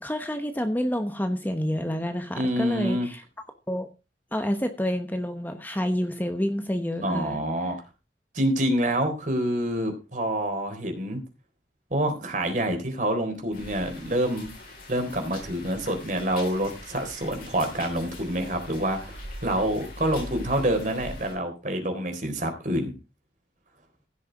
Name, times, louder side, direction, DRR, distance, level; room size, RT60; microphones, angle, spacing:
voice 1, 0.0-3.2 3.7-3.9 4.3-7.4, equal, 10° left, 7 dB, 1.1 m, -28 dB
voice 2, 2.4-3.1 7.0-7.8 8.3-11.2 11.9-14.5 14.9-22.9, right 1 dB, 45° right, 5 dB, 3.8 m, -27 dB
sound 1, 13.5-21.3, left 1 dB, 50° left, 7.1 m, -42 dB
16.0 x 6.6 x 5.1 m, 0.30 s
head